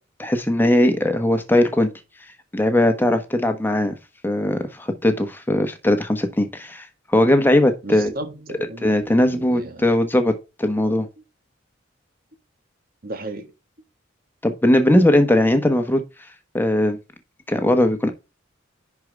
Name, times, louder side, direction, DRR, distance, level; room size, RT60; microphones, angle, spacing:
voice 1, 0.2-1.9 2.5-3.9 4.2-8.1 8.8-11.1 14.4-16.0 16.5-17.0 17.5-18.1, left 1 dB, 10° left, 1.2 m, -19 dB
voice 2, 7.8-9.8 13.0-13.5, right 2 dB, 45° right, 1.7 m, -35 dB
10.5 x 4.8 x 3.4 m
head